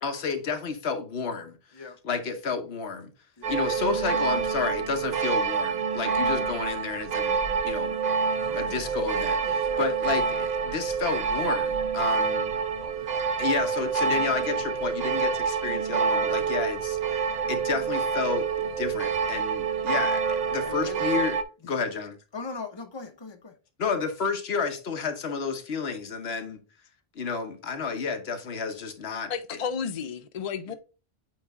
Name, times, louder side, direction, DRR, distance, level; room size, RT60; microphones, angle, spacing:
voice 1, 0.0-1.6 2.0-3.1 3.5-8.0 8.5-12.5 13.4-17.0 17.5-21.4 21.6-22.2 23.8-26.6 27.2-29.6, left 5 dB, 80° left, 1.2 m, -31 dB
sound 1, 3.4-21.4, right 5 dB, 50° right, 0.6 m, -27 dB
voice 2, 20.6-21.0 21.6-21.8 22.3-23.5, left 4 dB, 30° left, 0.8 m, -41 dB
voice 3, 29.3-30.7, left 6 dB, 50° left, 0.5 m, -32 dB
8.7 x 3.2 x 3.5 m
omnidirectional pair, 1.0 m